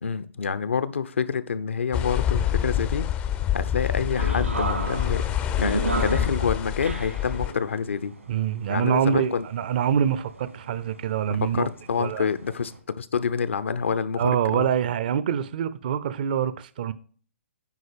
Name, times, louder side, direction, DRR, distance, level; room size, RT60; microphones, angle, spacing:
voice 1, 0.0-3.1 3.5-5.3 5.6-8.1 8.7-9.5 11.3-12.7 13.0-14.7, left 6 dB, 65° left, 0.6 m, -27 dB
sound 1, 1.9-7.5, left 10 dB, 20° left, 0.4 m, -26 dB
sound 2, 4.1-12.8, right 2 dB, 80° right, 2.0 m, -34 dB
voice 2, 8.3-11.7 12.0-12.3 14.2-16.9, right 8 dB, 40° right, 0.5 m, -25 dB
9.5 x 4.0 x 5.0 m
figure-of-eight pair, 130°, 7 cm